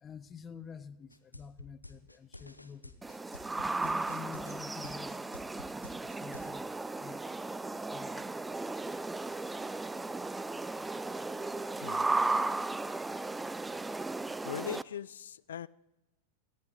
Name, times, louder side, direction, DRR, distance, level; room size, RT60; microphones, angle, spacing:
voice 1, 0.0-3.0 3.8-7.4 7.7-8.6, left 7 dB, 20° left, 0.7 m, -49 dB
sound 1, 1.1-6.5, left 2 dB, 85° left, 0.9 m, -50 dB
sound 2, 3.0-14.8, right 3 dB, 10° right, 0.4 m, -35 dB
voice 2, 14.4-15.7, left 9 dB, 65° left, 0.4 m, -40 dB
18.0 x 14.5 x 4.0 m
figure-of-eight pair, 90°, 0 cm